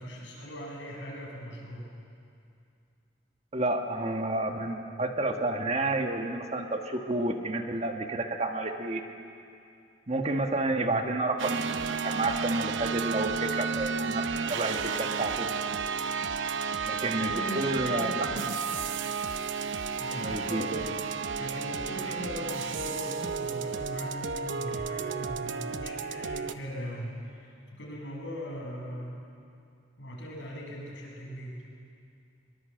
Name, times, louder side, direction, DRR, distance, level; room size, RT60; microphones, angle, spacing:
voice 1, 0.0-1.9 10.7-11.0 17.1-18.4 20.0-21.0 21.4-29.3 30.0-31.7, equal, 75° left, -3 dB, 6.8 m, -39 dB
voice 2, 3.5-9.0 10.1-15.5 16.8-18.2 20.2-20.8, right 2 dB, 35° right, 4 dB, 1.6 m, -30 dB
sound 1, 11.4-26.5, right 5 dB, 80° right, 0.7 m, -32 dB
22.0 x 22.0 x 7.8 m, 2.5 s
head